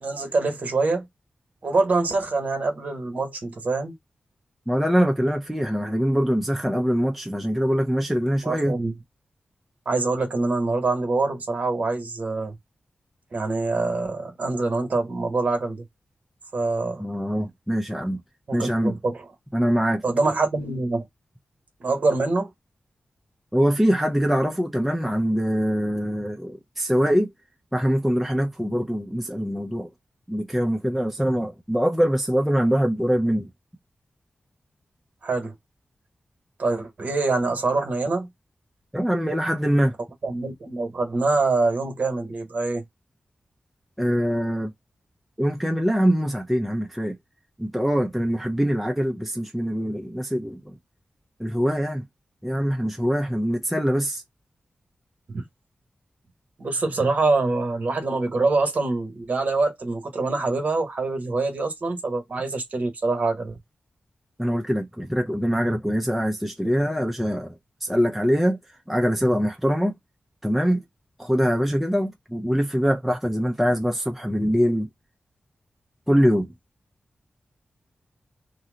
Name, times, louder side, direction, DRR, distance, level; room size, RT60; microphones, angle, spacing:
voice 1, 0.0-1.0 1.6-3.9 8.4-8.9 9.9-12.6 13.3-15.8 16.5-17.0 18.5-19.3 20.0-21.1 21.8-22.5 35.2-35.5 36.6-38.3 40.2-42.8 55.3-55.4 56.6-63.6, right 3 dB, 50° right, 1.0 m, -25 dB
voice 2, 4.7-8.8 17.0-18.2 18.5-19.0 19.5-20.0 23.5-27.3 27.7-29.9 30.3-33.5 38.9-39.9 44.0-44.7 45.4-47.2 47.6-50.7 51.4-52.0 52.4-54.2 64.4-67.5 67.8-68.6 68.9-70.0 70.4-70.8 71.2-74.9 76.1-76.5, equal, ahead, 0.4 m, -23 dB
2.8 x 2.1 x 3.7 m
wide cardioid pair, 135°, 3 cm